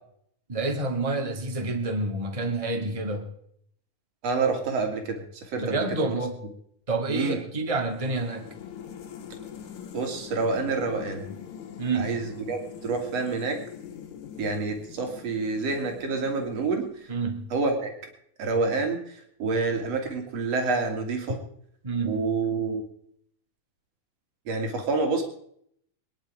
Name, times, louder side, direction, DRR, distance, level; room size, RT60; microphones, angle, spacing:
voice 1, 0.5-3.3 5.6-6.4 6.9-8.5 11.8-12.2 17.1-17.4 21.8-22.2, right 3 dB, 15° right, 4 dB, 1.7 m, -28 dB
voice 2, 4.2-6.2 7.1-7.4 9.9-11.2 12.0-13.6 14.4-17.1 17.5-17.9 18.4-21.4 22.1-22.8 24.5-25.2, right 4 dB, 60° right, 3 dB, 3.7 m, -28 dB
sound 1, 7.9-17.2, left 8 dB, 75° left, 3.0 m, -43 dB
24.5 x 10.5 x 4.9 m, 0.67 s
omnidirectional pair, 3.3 m